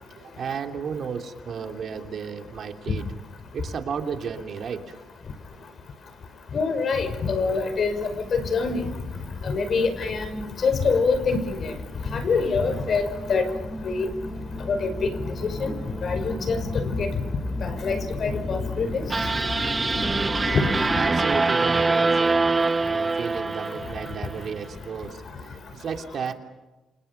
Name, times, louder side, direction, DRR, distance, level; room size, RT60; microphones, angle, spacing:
voice 1, 0.1-3.0 3.5-4.9 20.9-22.4 22.7-26.3, right 6 dB, 55° right, 5 dB, 3.1 m, -33 dB
voice 2, 6.5-7.9 8.3-8.8 9.4-11.7 12.1-13.5 13.8-14.1 14.7-14.9 15.6-15.7 16.0-17.1 17.6-19.0 20.5-20.7, left 4 dB, 50° left, 9 dB, 5.5 m, -25 dB
sound 1, 7.5-21.1, left 1 dB, 5° left, 7.6 m, -35 dB
sound 2, 19.1-24.4, right 3 dB, 25° right, 1.0 m, -24 dB
29.0 x 27.5 x 5.9 m, 1.1 s
cardioid pair, 90°, 0 cm